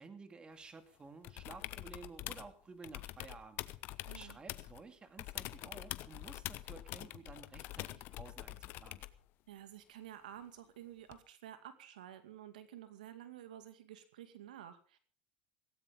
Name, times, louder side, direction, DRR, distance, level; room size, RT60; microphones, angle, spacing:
voice 1, 0.0-3.6 4.1-9.0, right 4 dB, 20° right, 8 dB, 2.5 m, -53 dB
sound 1, 1.2-2.5 2.8-4.8 5.2-9.2 11.1-11.2, left 16 dB, 55° left, 1.0 m, -45 dB
voice 2, 4.1-4.4 9.5-15.0, right 11 dB, 85° right, 9 dB, 2.2 m, -51 dB
17.5 x 17.0 x 3.9 m, 0.39 s
hypercardioid pair, 100°, 4 cm